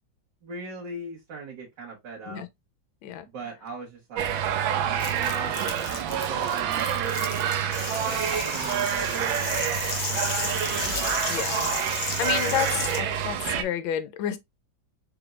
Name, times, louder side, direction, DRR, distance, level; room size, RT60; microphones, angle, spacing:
voice 1, 0.4-2.5 3.3-4.4 4.8-10.7, right 3 dB, 65° right, 1.9 m, -40 dB
sound 1, 4.2-13.6, right 9 dB, 90° right, 1.5 m, -27 dB
Crumpling crinkling, 5.0-12.4, left 7 dB, 60° left, 1.0 m, -41 dB
sound 2, 7.7-13.0, left 4 dB, 40° left, 0.7 m, -33 dB
voice 2, 11.3-11.7 12.2-14.4, left 10 dB, 85° left, 1.4 m, -30 dB
4.4 x 3.3 x 2.4 m
omnidirectional pair, 2.1 m